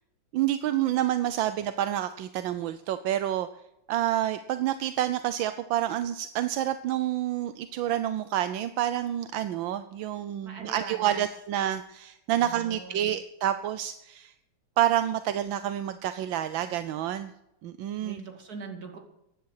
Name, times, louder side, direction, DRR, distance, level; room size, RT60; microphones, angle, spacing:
voice 1, 0.3-3.5 3.9-14.3 14.8-17.3 17.6-18.2, right 12 dB, 80° right, 11 dB, 1.5 m, -28 dB
voice 2, 10.4-11.3 12.3-13.1 18.0-19.0, right 4 dB, 50° right, 3 dB, 3.1 m, -42 dB
15.5 x 10.5 x 6.5 m, 0.86 s
omnidirectional pair, 2.1 m